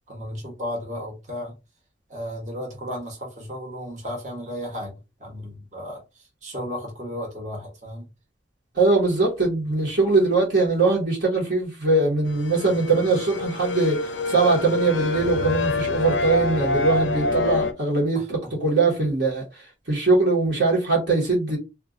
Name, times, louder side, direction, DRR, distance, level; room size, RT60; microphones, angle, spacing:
voice 1, 0.1-1.5 2.1-4.9 5.2-8.1 18.1-18.5, equal, 40° right, 1.1 m, -34 dB
voice 2, 8.7-21.6, right 3 dB, 60° right, 1.2 m, -21 dB
sound 1, 12.3-17.7, left 3 dB, 75° left, 0.5 m, -26 dB
2.4 x 2.4 x 3.6 m
head